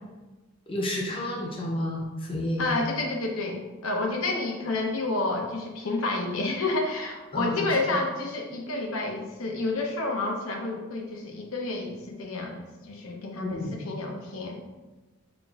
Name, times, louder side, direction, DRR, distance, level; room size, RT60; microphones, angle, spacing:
voice 1, 0.7-2.7 7.3-7.7 13.4-13.8, left 1 dB, 25° left, -2 dB, 0.6 m, -31 dB
voice 2, 2.6-14.6, left 2 dB, 75° left, 1 dB, 0.6 m, -30 dB
5.8 x 2.5 x 2.3 m, 1.2 s
head